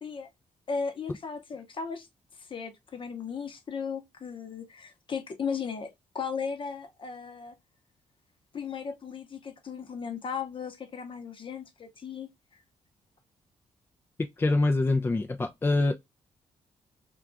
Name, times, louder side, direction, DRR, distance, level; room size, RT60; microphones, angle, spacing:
voice 1, 0.7-2.1 2.4-7.5 8.5-12.3, left 6 dB, 40° left, 0.8 m, -36 dB
voice 2, 14.4-15.9, left 2 dB, 20° left, 0.3 m, -24 dB
2.3 x 2.2 x 3.7 m
cardioid pair, 90°, 13 cm